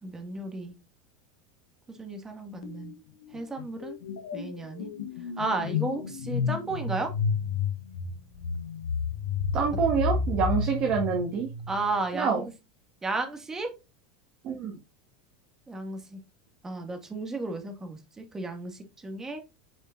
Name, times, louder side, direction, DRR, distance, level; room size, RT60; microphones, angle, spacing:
voice 1, 0.0-0.8 1.9-2.9 3.3-4.0 4.3-4.9 5.4-7.1 11.7-12.5 13.0-13.7 15.7-16.2 16.6-19.4, right 3 dB, 15° right, 5 dB, 2.3 m, -33 dB
sound 1, 2.6-2.9 3.2-12.0, left 5 dB, 85° left, 1.6 m, -31 dB
voice 2, 9.5-11.5 12.1-12.4 14.4-14.7, right 6 dB, 45° right, 1 dB, 2.1 m, -26 dB
8.9 x 5.3 x 2.7 m, 0.26 s
hypercardioid pair, 105°, 3 cm